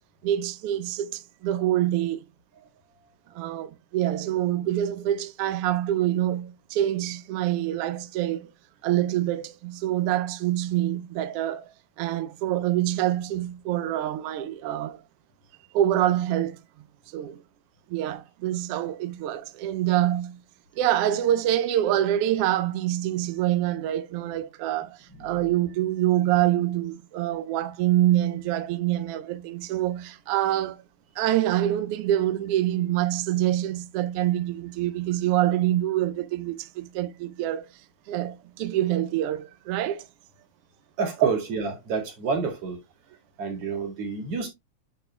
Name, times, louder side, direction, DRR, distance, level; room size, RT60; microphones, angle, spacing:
voice 1, 0.2-2.2 3.3-8.5 8.8-15.0 15.7-16.6 17.1-17.4 17.9-20.4 20.7-30.8 31.2-37.7 38.1-40.1, right 13 dB, 90° right, 1.3 m, -26 dB
voice 2, 41.0-42.8 43.4-44.5, right 5 dB, 55° right, 2.9 m, -28 dB
11.0 x 4.3 x 2.2 m
omnidirectional pair, 3.3 m